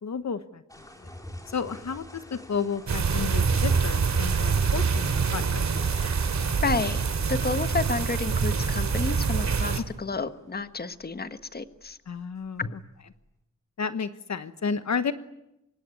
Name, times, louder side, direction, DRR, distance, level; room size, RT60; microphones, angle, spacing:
voice 1, 0.0-0.6 1.0-1.1 1.5-5.6 9.7-9.8 12.1-12.6 13.8-15.1, left 6 dB, 70° left, 11 dB, 1.2 m, -32 dB
sound 1, 0.7-13.3, left 1 dB, 10° left, 4.1 m, -48 dB
sound 2, 2.9-9.8, right 5 dB, 70° right, 2.7 m, -25 dB
voice 2, 6.6-7.0 7.3-12.0 12.6-12.8, left 4 dB, 35° left, 10 dB, 1.4 m, -30 dB
25.5 x 23.0 x 9.8 m, 0.87 s
wide cardioid pair, 110°, 29 cm